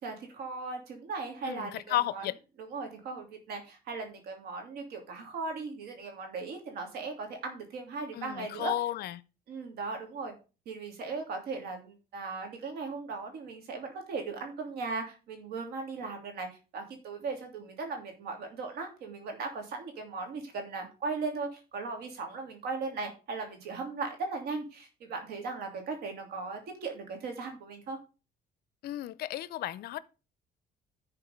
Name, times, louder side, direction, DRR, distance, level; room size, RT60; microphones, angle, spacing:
voice 1, 0.0-2.2 2.6-8.7 9.5-10.3 10.7-16.5 16.7-28.0, right 4 dB, 75° right, 2.9 m, -38 dB
voice 2, 1.4-2.4 8.1-9.2 28.8-30.0, left 14 dB, 70° left, 0.6 m, -33 dB
11.0 x 4.5 x 5.1 m
cardioid pair, 110°, 17 cm